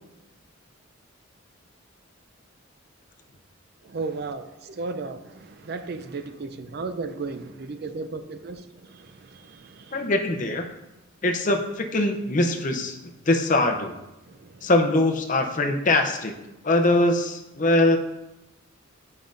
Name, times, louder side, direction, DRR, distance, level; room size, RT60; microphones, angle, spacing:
voice 1, 3.8-10.1 14.3-14.7, right 3 dB, 50° right, 9 dB, 0.4 m, -35 dB
voice 2, 9.9-10.7 11.2-13.9 14.6-16.4 16.6-18.0, left 2 dB, 40° left, 5 dB, 0.6 m, -22 dB
9.1 x 5.3 x 2.6 m, 0.98 s
head